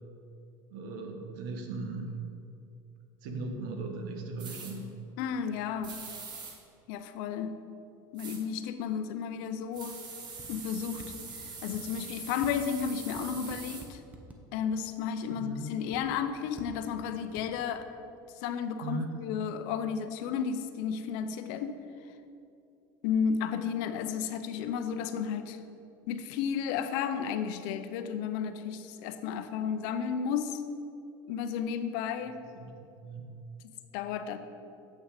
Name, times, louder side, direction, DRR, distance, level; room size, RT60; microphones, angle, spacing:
voice 1, 0.7-2.2 3.2-4.9 15.3-15.8 18.8-19.1 32.5-33.3, right 2 dB, 75° right, 4 dB, 1.1 m, -38 dB
sound 1, 4.4-4.7 5.8-6.5 8.2-8.4 9.7-13.8, right 4 dB, 45° right, 1.4 m, -43 dB
voice 2, 5.2-6.0 6.9-7.6 8.1-10.0 10.5-11.1 11.3-14.0 14.5-17.9 18.4-21.8 23.0-25.6 26.1-30.6 31.3-32.4 33.9-34.4, left 7 dB, 70° left, 10 dB, 0.6 m, -33 dB
sound 2, 10.4-10.6 11.0-11.1 11.7-12.0 12.4-12.5 13.1-14.4 15.9-16.1 16.6-16.7 17.4-17.6, right 2 dB, 15° right, 0.9 m, -48 dB
7.8 x 5.9 x 4.9 m, 2.6 s
supercardioid pair, 120°, 11 cm